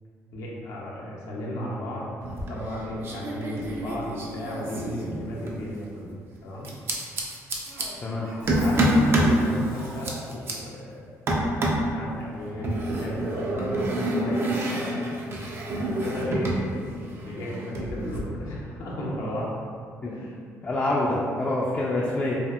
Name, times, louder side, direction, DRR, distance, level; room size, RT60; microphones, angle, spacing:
voice 1, 0.3-2.1 2.5-6.1 6.4-6.7 8.5-11.0 11.9-15.0 15.7-19.5 20.0-20.7, equal, 80° left, -5 dB, 0.5 m, -34 dB
sound 1, 2.2-2.8 3.0-5.6 6.6-7.9 8.5-9.4 9.8-10.5 11.3-11.9 12.6-16.6 16.9-18.2, right 1 dB, 45° right, 0.5 m, -27 dB
Cough, 7.7-10.6, right 1 dB, 70° right, 1.0 m, -45 dB
voice 2, 20.6-22.4, left 1 dB, 25° left, -5 dB, 0.3 m, -26 dB
2.7 x 2.4 x 2.3 m, 2.2 s
cardioid pair, 95°, 6 cm